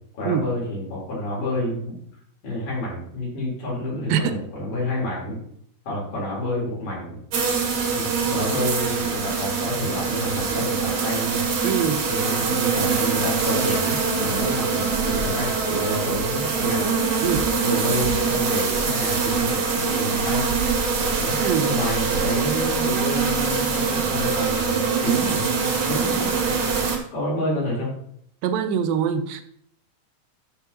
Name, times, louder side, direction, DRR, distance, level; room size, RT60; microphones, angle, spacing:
voice 1, 0.1-2.0 2.4-5.4 5.9-7.2 7.9-11.4 12.1-16.9 17.6-20.5 21.2-21.4 21.6-25.5 25.9-26.3 27.1-27.9, left 1 dB, 65° left, -5 dB, 5.4 m, -29 dB
sound 1, 7.3-27.0, right 5 dB, 50° right, 1.8 m, -23 dB
voice 2, 11.6-12.1 17.2-17.5 21.4-21.7 28.4-29.4, right 8 dB, 85° right, 10 dB, 2.4 m, -23 dB
13.5 x 6.6 x 2.9 m, 0.69 s
omnidirectional pair, 4.1 m